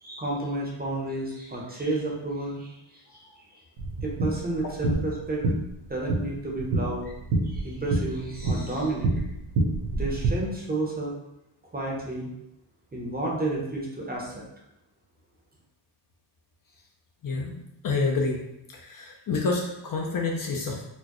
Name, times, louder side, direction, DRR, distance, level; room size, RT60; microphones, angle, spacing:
voice 1, 0.0-2.7 4.0-5.4 5.9-7.1 7.5-9.1 9.9-11.1 11.7-12.3 12.9-14.3, right 2 dB, 20° right, -3 dB, 0.7 m, -31 dB
sound 1, 3.8-10.3, right 2 dB, 80° right, 0.9 m, -28 dB
voice 2, 17.2-17.6 17.8-18.4 18.7-20.9, left 3 dB, 45° left, 0 dB, 0.5 m, -28 dB
4.4 x 2.1 x 2.9 m, 0.84 s
cardioid pair, 125°, 49 cm